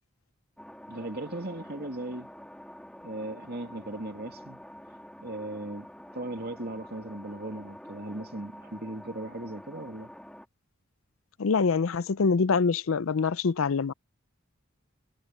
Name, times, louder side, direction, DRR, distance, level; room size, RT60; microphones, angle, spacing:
sound 1, 0.6-10.5, equal, 5° left, 2.8 m, -47 dB
voice 1, 0.9-2.3 3.0-4.6 5.2-5.9 6.1-10.1, right 2 dB, 50° right, 2.7 m, -37 dB
voice 2, 11.4-13.9, left 5 dB, 90° left, 0.6 m, -25 dB
head